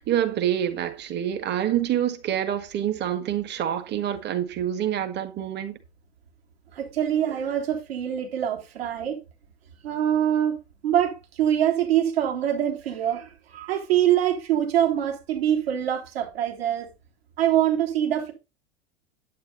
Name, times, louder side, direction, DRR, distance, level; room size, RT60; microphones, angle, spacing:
voice 1, 0.0-5.7, right 10 dB, 30° right, 1.7 m, -26 dB
voice 2, 6.7-9.2 9.8-10.6 10.8-16.9 17.4-18.3, right 10 dB, 65° right, 3.5 m, -24 dB
9.6 x 9.1 x 4.0 m
figure-of-eight pair, 85°, 33 cm